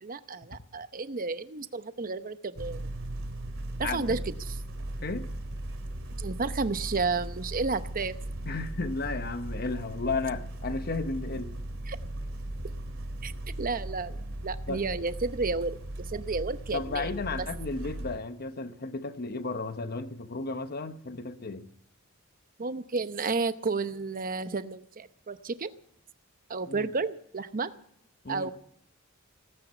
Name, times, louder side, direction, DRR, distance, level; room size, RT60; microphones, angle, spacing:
voice 1, 0.0-2.9 3.8-4.2 4.4-4.5 6.2-8.1 11.9-12.0 13.2-13.3 13.6-15.8 16.1-17.1 22.6-25.7 26.5-27.7 28.3-28.5, right 4 dB, 40° right, 0.8 m, -31 dB
sound 1, 2.6-18.2, right 1 dB, 80° right, 2.3 m, -37 dB
voice 2, 3.8-4.2 5.0-5.3 8.4-11.6 14.7-14.8 16.7-21.7 26.7-26.9 28.2-28.5, left 3 dB, 50° left, 1.0 m, -34 dB
18.0 x 9.2 x 8.1 m
head